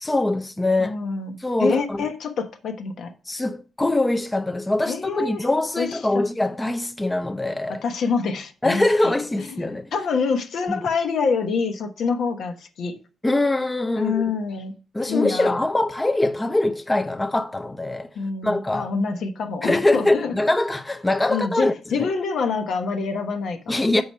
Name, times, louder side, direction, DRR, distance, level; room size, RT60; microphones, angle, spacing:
voice 1, 0.0-1.0 1.4-2.1 3.3-7.8 8.6-9.9 10.7-10.8 13.2-14.2 14.9-18.1 18.4-18.9 19.6-21.7 23.7-24.0, left 2 dB, 15° left, 0.7 m, -23 dB
voice 2, 0.8-3.1 4.8-5.5 5.8-6.2 7.7-13.0 14.0-14.7 15.1-15.6 18.1-20.3 21.3-24.0, left 5 dB, 70° left, 1.2 m, -26 dB
6.8 x 4.8 x 5.5 m
cardioid pair, 80°, 0 cm